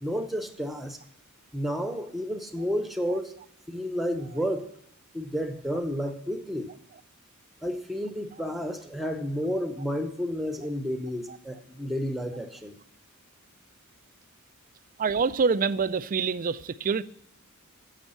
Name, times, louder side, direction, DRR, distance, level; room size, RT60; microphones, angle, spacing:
voice 1, 0.0-1.0 1.5-3.3 3.7-4.7 5.1-6.7 7.6-12.8, equal, ahead, 0.9 m, -31 dB
voice 2, 15.0-17.0, right 5 dB, 40° right, 0.4 m, -26 dB
10.0 x 7.3 x 7.7 m
head